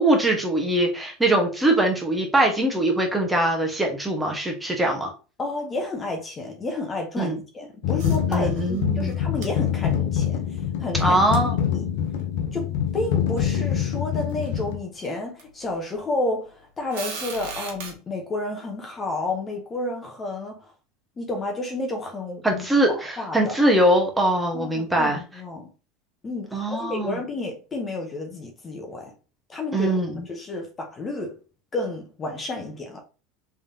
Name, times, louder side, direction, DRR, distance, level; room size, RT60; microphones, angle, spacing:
voice 1, 0.0-5.1 7.2-7.4 8.3-9.1 11.0-11.6 22.4-25.2 26.5-27.2 29.7-30.2, right 1 dB, 10° right, 1.2 m, -22 dB
voice 2, 5.4-10.4 10.8-11.2 11.7-11.9 12.5-12.7 12.9-20.7 21.2-23.6 24.5-25.7 26.2-29.1 29.5-29.9 30.3-31.4 31.7-33.0, left 2 dB, 25° left, 1.0 m, -31 dB
sound 1, 7.8-14.8, left 9 dB, 70° left, 0.7 m, -25 dB
sound 2, 8.0-8.8 9.1-9.2 9.4-9.5 11.3-11.4 12.2-12.3 13.0-13.1 13.4-13.6 14.2-14.6 15.4-15.5 16.9-17.9, right 4 dB, 70° right, 1.3 m, -36 dB
3.5 x 3.3 x 2.8 m
hypercardioid pair, 90°, 0 cm